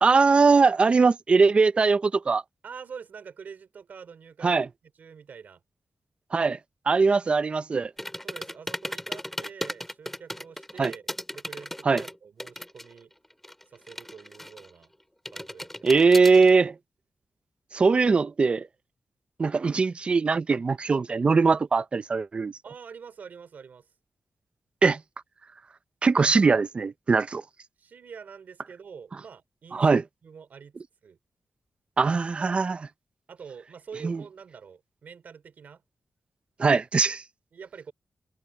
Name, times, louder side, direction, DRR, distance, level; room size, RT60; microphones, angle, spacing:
voice 1, 0.0-2.4 4.4-4.7 6.3-6.6 6.9-7.9 10.8-10.9 11.8-12.0 15.8-16.8 17.7-18.7 19.4-22.5 24.8-25.0 26.0-27.4 29.7-30.0 32.0-32.9 34.0-34.2 36.6-37.2, right 4 dB, 35° right, 0.5 m, -21 dB
voice 2, 2.6-4.6 5.0-5.6 6.9-7.3 8.2-11.0 11.3-13.1 13.7-14.9 15.3-15.9 17.9-18.0 22.6-23.9 27.8-30.7 31.0-31.2 33.3-35.8 36.6-36.8 37.5-37.9, right 6 dB, 70° right, 3.2 m, -46 dB
sound 1, 8.0-13.0 13.2-14.8 15.3-16.5, left 1 dB, 5° left, 2.1 m, -36 dB
wide cardioid pair, 130°, 3 cm